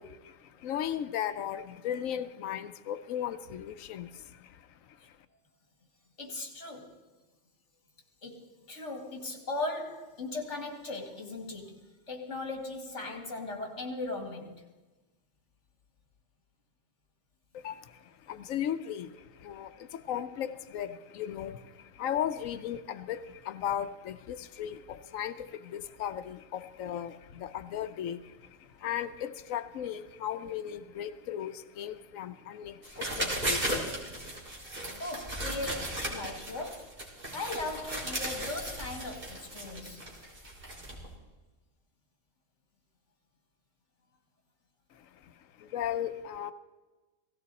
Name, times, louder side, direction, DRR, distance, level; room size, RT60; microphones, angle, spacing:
voice 1, 0.0-5.2 17.5-34.3 44.9-46.5, left 10 dB, 85° left, 11 dB, 1.1 m, -37 dB
voice 2, 6.2-7.0 8.2-14.6 35.0-37.0 37.3-40.0, left 2 dB, 65° left, 3 dB, 2.5 m, -38 dB
sound 1, 32.8-41.1, right 1 dB, 45° right, 3.4 m, -36 dB
17.5 x 16.0 x 4.1 m, 1.2 s
omnidirectional pair, 1.3 m